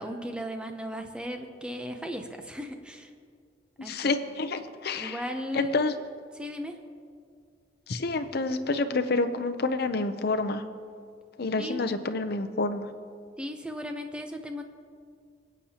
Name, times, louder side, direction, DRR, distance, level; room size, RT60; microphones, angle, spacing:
voice 1, 0.0-3.1 3.8-4.1 4.9-5.7 6.4-6.8 11.6-11.8 13.4-14.6, equal, 5° right, 5 dB, 0.7 m, -36 dB
voice 2, 3.8-5.2 5.5-5.9 7.9-10.6 11.4-12.9, left 3 dB, 60° left, 8 dB, 0.6 m, -28 dB
22.0 x 8.4 x 2.9 m, 2.2 s
head